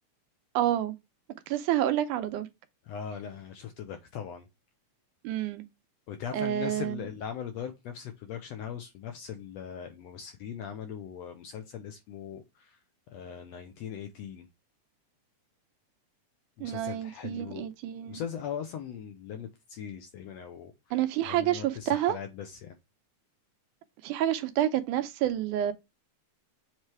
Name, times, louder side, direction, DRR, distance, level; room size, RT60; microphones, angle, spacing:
voice 1, 0.5-1.0 1.5-2.5 5.2-5.7 6.3-7.0 16.6-18.2 20.9-22.2 24.0-25.7, right 12 dB, 80° right, 2.2 m, -28 dB
voice 2, 2.8-4.5 6.1-12.8 13.1-14.5 16.6-17.7 18.1-22.8, left 8 dB, 75° left, 1.6 m, -40 dB
7.4 x 3.2 x 4.6 m
omnidirectional pair, 3.7 m